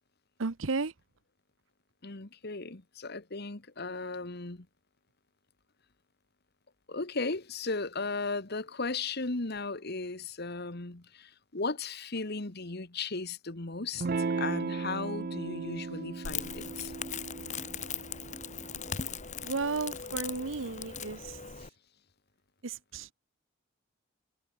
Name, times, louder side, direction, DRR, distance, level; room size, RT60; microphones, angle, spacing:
voice 1, 0.4-0.9 19.4-21.4 22.6-23.1, right 4 dB, 75° right, 1.0 m, -34 dB
voice 2, 2.0-4.7 6.9-14.1 14.4-16.9, left 3 dB, 55° left, 1.7 m, -36 dB
Electric guitar / Strum, 14.0-19.1, right 4 dB, 50° right, 0.5 m, -36 dB
Crackle, 16.2-21.7, left 7 dB, 40° left, 2.5 m, -39 dB
head